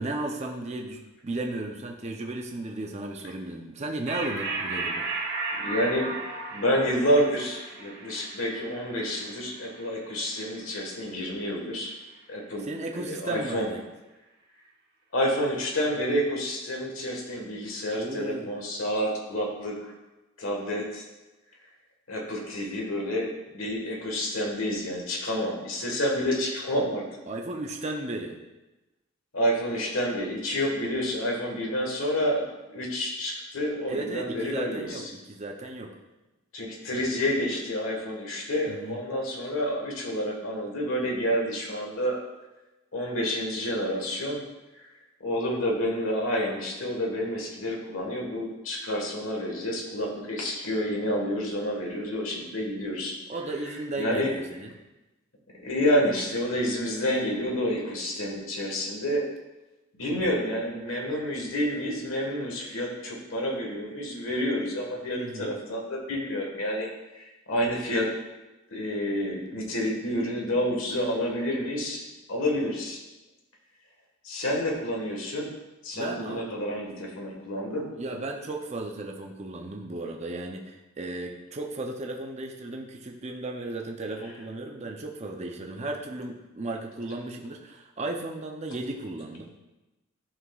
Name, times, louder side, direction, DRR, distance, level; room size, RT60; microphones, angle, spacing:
voice 1, 0.0-5.1 12.6-13.8 18.0-18.5 27.3-28.4 33.9-35.9 38.7-39.0 53.3-54.7 65.2-65.5 75.9-76.5 78.0-89.5, right 2 dB, 30° right, 1 dB, 0.6 m, -35 dB
sound 1, 4.1-11.0, right 3 dB, 50° right, 0.9 m, -35 dB
voice 2, 5.5-6.2 6.5-11.9 12.3-12.7 12.9-13.7 15.1-19.9 20.4-21.0 22.1-27.0 29.3-35.1 36.5-42.2 42.9-44.4 44.7-44.9 45.2-53.1 54.0-54.3 55.6-59.2 59.9-66.9 67.1-68.1 68.7-72.0 72.3-73.0 74.2-75.5 75.8-77.9, equal, 70° left, 0 dB, 1.5 m, -29 dB
11.0 x 5.8 x 2.4 m, 1.1 s
head